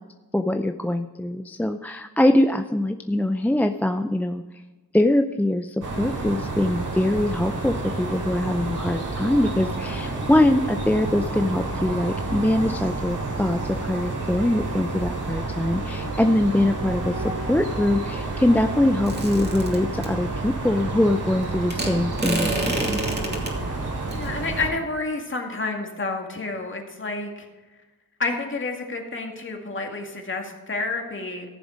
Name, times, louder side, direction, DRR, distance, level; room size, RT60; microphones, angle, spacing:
voice 1, 0.3-4.4 4.9-23.0, left 1 dB, 5° left, 7 dB, 0.4 m, -23 dB
sound 1, 5.8-24.7, right 2 dB, 60° right, 3.1 m, -30 dB
sound 2, 19.1-20.1 21.7-23.5 24.1-24.3, right 2 dB, 30° right, 2.5 m, -28 dB
voice 2, 24.1-27.5 28.2-31.5, left 3 dB, 35° left, 2 dB, 2.1 m, -29 dB
14.5 x 7.1 x 5.1 m, 1.3 s
wide cardioid pair, 105°, 35 cm